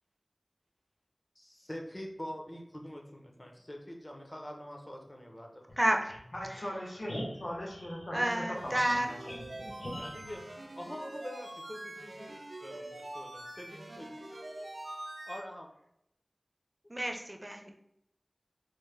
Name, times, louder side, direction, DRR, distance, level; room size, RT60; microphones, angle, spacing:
voice 1, 1.4-5.8 10.0-10.4 10.7-14.7 15.3-15.7, equal, 35° left, 1 dB, 0.6 m, -45 dB
voice 2, 5.8-6.1 6.5-6.7 8.1-9.1 16.9-17.7, right 1 dB, 20° right, 3 dB, 0.5 m, -30 dB
voice 3, 6.3-10.2, equal, 60° left, -2 dB, 0.9 m, -39 dB
sound 1, 8.5-15.4, right 1 dB, 90° right, 0.4 m, -44 dB
3.2 x 2.1 x 3.3 m, 0.76 s
wide cardioid pair, 45°, 0 cm